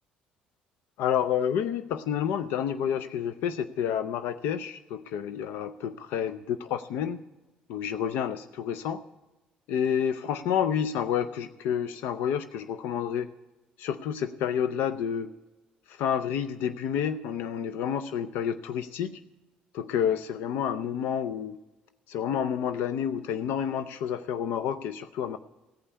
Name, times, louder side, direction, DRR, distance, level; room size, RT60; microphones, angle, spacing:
voice 1, 1.0-7.2 7.7-9.0 9.7-13.3 13.8-15.3 15.9-19.2 19.7-21.6 22.1-25.4, left 8 dB, 80° left, 11 dB, 0.5 m, -29 dB
16.0 x 5.5 x 8.3 m, 1.1 s
cardioid pair, 90°, 3 cm